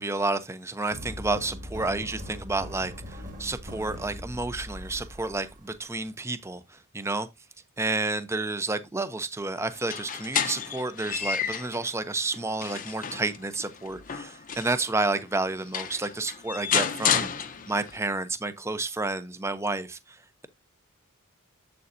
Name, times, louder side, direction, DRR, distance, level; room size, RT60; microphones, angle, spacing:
voice 1, 0.0-7.3 7.8-17.3 17.7-20.5, right 2 dB, 10° right, 0.5 m, -30 dB
sound 1, 0.9-6.1, left 1 dB, 35° right, 1.8 m, -40 dB
sound 2, 9.7-11.8 12.3-14.9 15.4-15.5 15.7-18.0, left 8 dB, 35° left, 0.7 m, -30 dB
7.7 x 6.8 x 2.6 m
head